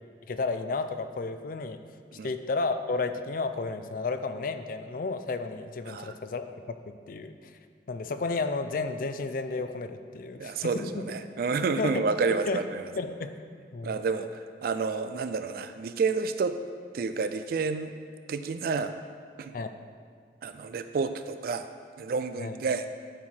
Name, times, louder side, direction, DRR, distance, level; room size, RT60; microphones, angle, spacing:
voice 1, 0.3-1.8 2.2-7.5 7.9-11.0 11.8-11.9 12.5-12.6 13.0-13.3 13.7-14.0 19.5-19.7 22.4-22.6, left 3 dB, 50° left, 9 dB, 0.4 m, -32 dB
voice 2, 10.4-12.8 13.8-16.6 16.9-17.9 18.3-18.9 19.4-19.5 20.4-21.7 22.0-22.9, right 4 dB, 55° right, 9 dB, 0.3 m, -30 dB
12.0 x 4.7 x 4.3 m, 2.1 s
head